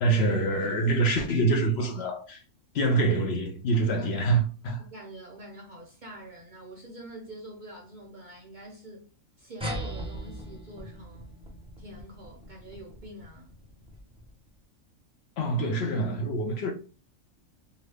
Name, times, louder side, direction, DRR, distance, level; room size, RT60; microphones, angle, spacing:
voice 1, 0.0-2.4 2.7-4.8 15.4-16.7, right 2 dB, 60° left, 0.8 m, -25 dB
voice 2, 4.0-9.1 9.4-11.3 11.8-13.5, right 1 dB, 50° right, 0.6 m, -46 dB
sound 1, 9.6-14.5, right 1 dB, 10° right, 0.3 m, -40 dB
2.8 x 2.5 x 3.3 m
omnidirectional pair, 1.3 m